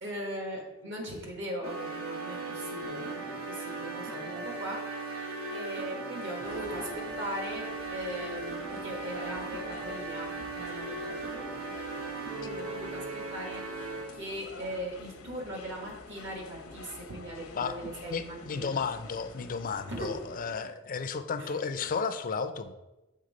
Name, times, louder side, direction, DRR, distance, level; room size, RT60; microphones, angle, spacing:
voice 1, 0.0-4.8 5.5-11.5 12.4-13.8 14.1-18.7 19.9-20.2 21.4-21.6, equal, 60° right, 0 dB, 1.6 m, -39 dB
sound 1, 1.6-14.3, right 3 dB, 85° right, 1.0 m, -38 dB
sound 2, 6.4-20.6, left 3 dB, 80° left, 0.7 m, -48 dB
voice 2, 17.6-22.7, left 5 dB, 40° left, 9 dB, 0.4 m, -33 dB
6.5 x 3.6 x 5.0 m, 1.1 s
head